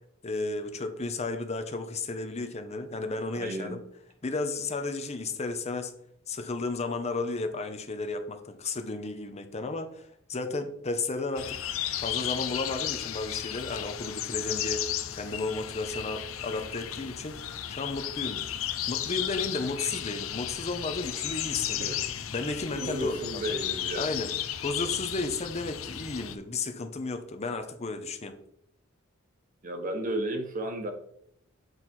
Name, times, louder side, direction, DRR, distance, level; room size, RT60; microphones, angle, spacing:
voice 1, 0.2-3.8 4.2-5.9 6.3-11.6 12.0-14.8 15.1-18.4 18.9-22.0 22.3-23.4 23.9-24.3 24.6-28.3, left 3 dB, 35° left, 0.7 m, -33 dB
voice 2, 3.3-3.8 21.8-22.0 22.8-24.2 29.6-30.9, right 1 dB, 40° right, 1.1 m, -33 dB
sound 1, 11.4-26.4, left 11 dB, 85° left, 0.6 m, -34 dB
8.0 x 4.1 x 4.5 m
head